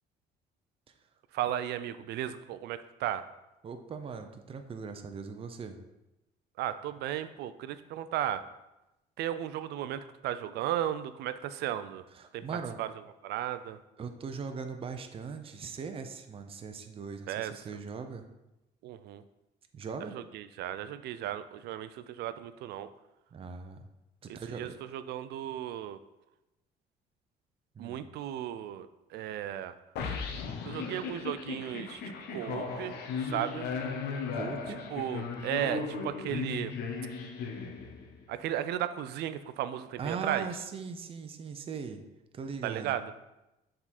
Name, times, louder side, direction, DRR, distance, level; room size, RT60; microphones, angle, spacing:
voice 1, 1.3-3.2 6.6-8.4 9.2-12.0 12.3-12.4 12.8-12.9 13.2-13.8 17.3-17.5 18.8-19.2 20.1-22.9 24.3-26.0 27.8-28.9 29.1-29.7 30.6-32.0 32.3-33.0 33.2-33.7 34.9-36.7 38.3-40.5 42.6-43.0, right 11 dB, 75° right, 13 dB, 0.5 m, -35 dB
voice 2, 3.6-5.8 12.1-12.8 14.0-18.2 19.7-20.2 23.3-23.9 24.2-24.7 27.7-28.0 34.3-34.9 40.0-42.1 42.3-43.0, right 5 dB, 35° right, 7 dB, 0.6 m, -40 dB
sound 1, 30.0-38.2, left 5 dB, 75° left, 0.8 m, -36 dB
7.1 x 3.7 x 4.2 m, 0.96 s
cardioid pair, 110°, 17 cm